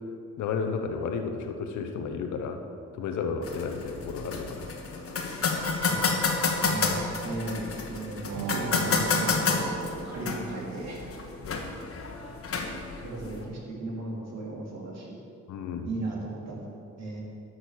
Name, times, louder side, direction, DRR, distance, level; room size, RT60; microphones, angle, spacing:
voice 1, 0.4-2.6 2.9-4.7 11.4-11.6 12.0-12.1 15.5-15.9, left 5 dB, 80° left, 6 dB, 1.1 m, -32 dB
sound 1, 3.4-13.4, left 4 dB, 50° left, 1.5 m, -30 dB
voice 2, 5.4-11.0 13.0-15.2 15.8-16.6 17.0-17.2, right 2 dB, 60° right, -3 dB, 3.1 m, -36 dB
sound 2, 8.2-10.9, right 8 dB, 80° right, 0.7 m, -37 dB
11.5 x 6.5 x 6.4 m, 2.6 s
cardioid pair, 90°, 30 cm